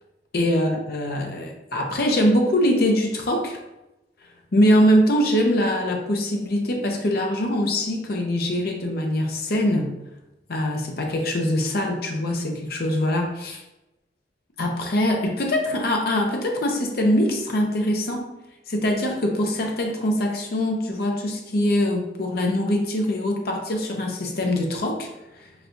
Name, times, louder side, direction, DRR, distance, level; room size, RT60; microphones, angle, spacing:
voice 1, 0.3-3.6 4.5-9.9 10.5-13.6 14.6-18.3 18.7-25.1, left 1 dB, 55° left, 1 dB, 0.6 m, -23 dB
5.9 x 2.3 x 2.6 m, 0.96 s
head